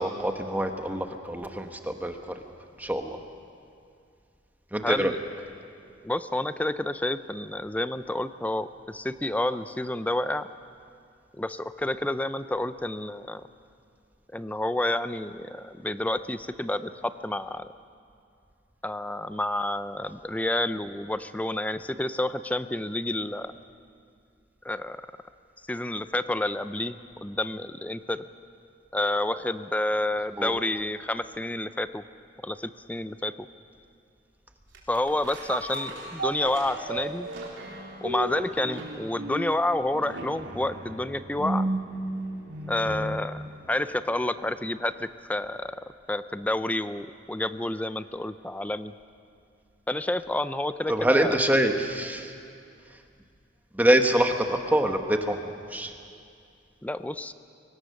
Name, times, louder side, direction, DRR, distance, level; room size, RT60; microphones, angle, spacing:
voice 1, 0.0-2.2 2.8-3.2 4.7-5.1 30.4-30.5 50.9-52.3 53.7-55.9, right 1 dB, 10° right, 5 dB, 1.1 m, -25 dB
voice 2, 4.8-5.2 6.0-10.5 11.3-13.4 14.3-17.7 18.8-23.5 24.6-25.0 25.7-28.2 28.9-32.0 32.4-33.5 34.9-37.3 38.0-41.7 42.7-45.8 46.1-48.9 49.9-51.3 56.8-57.3, left 1 dB, 10° left, 13 dB, 0.4 m, -29 dB
sound 1, 34.7-43.3 43.7-43.8, right 2 dB, 80° right, 3.8 m, -34 dB
23.5 x 18.0 x 6.5 m, 2.4 s
head